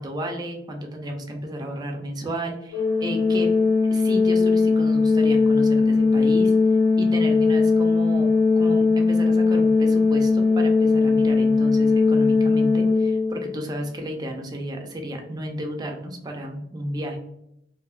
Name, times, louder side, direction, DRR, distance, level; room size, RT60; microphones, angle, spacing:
voice 1, 0.0-3.5 3.9-6.5 6.9-17.2, equal, 20° right, 2 dB, 0.4 m, -33 dB
Organ, 2.7-13.6, left 4 dB, 80° left, 0.4 m, -19 dB
2.7 x 2.0 x 2.3 m, 0.77 s
head